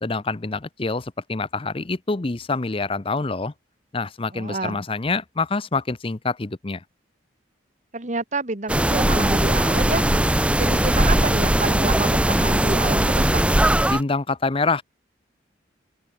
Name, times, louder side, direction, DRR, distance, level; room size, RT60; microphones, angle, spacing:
voice 1, 0.0-3.5 3.9-6.8 13.9-14.8, left 3 dB, 30° left, 0.7 m, -26 dB
voice 2, 4.3-4.8 7.9-10.3 10.6-13.5, right 3 dB, 40° right, 1.7 m, -28 dB
sound 1, 8.7-14.0, right 1 dB, 5° right, 0.7 m, -19 dB
open air
head